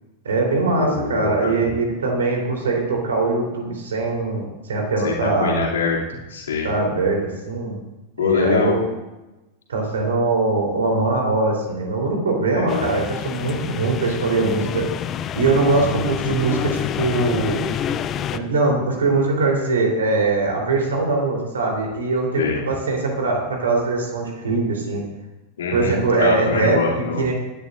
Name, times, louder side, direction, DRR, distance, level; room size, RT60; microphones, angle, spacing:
voice 1, 0.2-5.6 6.6-7.7 8.2-8.8 9.7-14.9 15.3-17.7 18.3-25.0 25.7-27.3, right 3 dB, 65° right, 0 dB, 3.7 m, -21 dB
voice 2, 0.8-1.5 5.0-6.7 8.2-8.7 12.5-13.0 22.4-22.6 25.6-27.2, left 5 dB, 65° left, -3 dB, 2.9 m, -24 dB
sound 1, 12.7-18.4, left 9 dB, 30° left, 0.6 m, -28 dB
18.5 x 11.5 x 2.6 m, 1.0 s
figure-of-eight pair, 90°, 0 cm